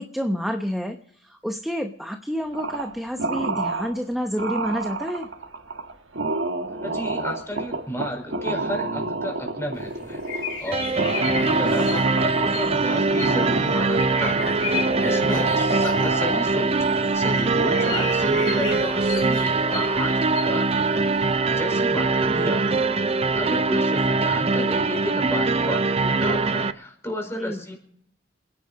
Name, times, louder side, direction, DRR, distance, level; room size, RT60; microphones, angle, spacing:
voice 1, 0.0-5.3 15.3-15.4 27.4-27.6, equal, ahead, 5 dB, 0.9 m, -29 dB
sound 1, 2.5-2.9 3.2-3.9 4.4-17.1 17.5-18.2, right 2 dB, 80° right, 1.5 m, -29 dB
voice 2, 6.8-10.2 10.6-21.0 21.5-27.8, equal, 15° left, 2 dB, 5.0 m, -33 dB
sound 2, 9.8-21.4, left 7 dB, 85° left, 3.3 m, -36 dB
sound 3, 10.7-26.7, right 3 dB, 30° right, 0.5 m, -22 dB
28.5 x 10.5 x 4.2 m, 0.66 s
head